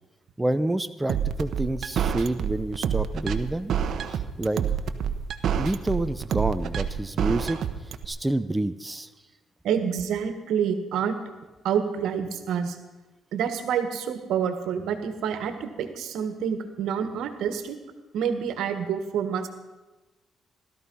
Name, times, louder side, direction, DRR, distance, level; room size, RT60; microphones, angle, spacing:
voice 1, 0.4-3.8 4.1-4.6 5.6-7.6 8.1-9.1, right 1 dB, 10° right, 11 dB, 0.6 m, -28 dB
sound 1, 1.1-8.1, right 8 dB, 65° right, 1.1 m, -27 dB
voice 2, 9.6-11.2 11.6-12.8 13.3-17.8 18.1-19.5, right 7 dB, 80° right, 9 dB, 1.6 m, -28 dB
16.5 x 13.5 x 5.5 m, 1.2 s
cardioid pair, 90°, 0 cm